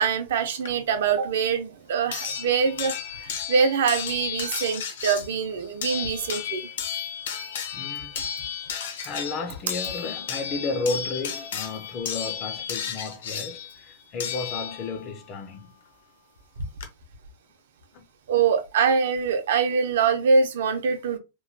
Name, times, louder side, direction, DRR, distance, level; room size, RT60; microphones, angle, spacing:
voice 1, 0.0-3.0 3.2-6.6 18.3-21.2, right 5 dB, 65° right, 0.6 m, -24 dB
sound 1, 0.6-0.7 2.1-15.1 16.4-16.5 16.8-16.9, left 8 dB, 70° left, 0.7 m, -33 dB
voice 2, 7.7-8.2 9.0-15.8 17.9-18.0, left 3 dB, 20° left, 0.4 m, -33 dB
3.0 x 2.2 x 2.6 m
supercardioid pair, 180°, 0 cm